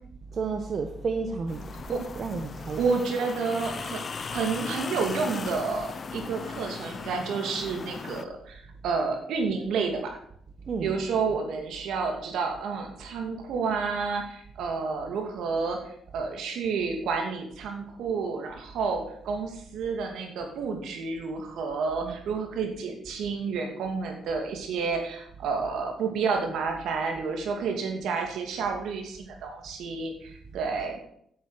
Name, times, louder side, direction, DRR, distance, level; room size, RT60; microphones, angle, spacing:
voice 1, 0.3-1.6 2.1-2.8 10.7-10.9 22.0-22.1, right 4 dB, 50° right, 1.1 m, -31 dB
sound 1, 1.5-8.2, left 5 dB, 40° left, 0.7 m, -38 dB
voice 2, 2.8-10.1 10.8-31.0, right 5 dB, 75° right, 2.5 m, -30 dB
8.9 x 7.9 x 6.6 m
cardioid pair, 90°, 0 cm